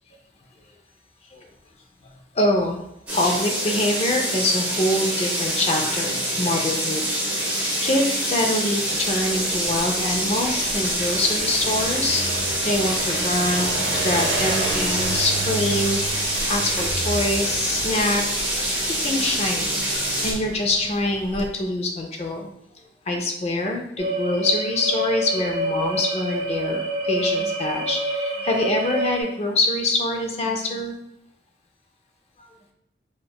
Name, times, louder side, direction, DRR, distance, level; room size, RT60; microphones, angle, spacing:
voice 1, 2.0-2.8 3.1-7.1 7.8-12.2 12.6-22.5 23.1-30.9 32.4-32.5, left 1 dB, 35° left, 2 dB, 0.5 m, -25 dB
sound 1, 3.1-20.3, right 1 dB, 10° right, 0.9 m, -25 dB
sound 2, 8.9-21.5, right 2 dB, 90° right, 0.7 m, -32 dB
sound 3, 24.0-29.2, right 1 dB, 30° right, 0.5 m, -27 dB
4.4 x 2.2 x 2.2 m, 0.81 s
head